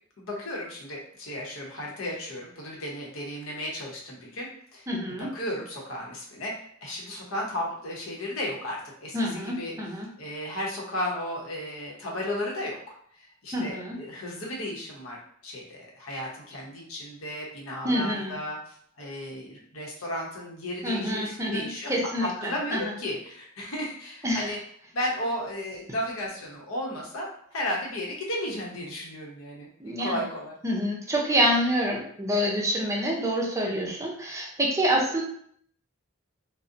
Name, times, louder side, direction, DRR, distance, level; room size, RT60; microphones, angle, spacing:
voice 1, 0.2-4.9 5.2-9.7 10.2-12.8 13.1-15.2 15.4-21.9 22.2-24.6 24.9-29.7 30.0-30.5, left 1 dB, 75° left, -3 dB, 0.8 m, -34 dB
voice 2, 4.9-5.3 9.1-10.1 13.5-14.0 17.8-18.3 20.8-22.9 24.2-24.5 29.8-30.2 30.6-35.2, equal, 15° right, -2 dB, 0.5 m, -27 dB
2.6 x 2.0 x 2.5 m, 0.64 s
head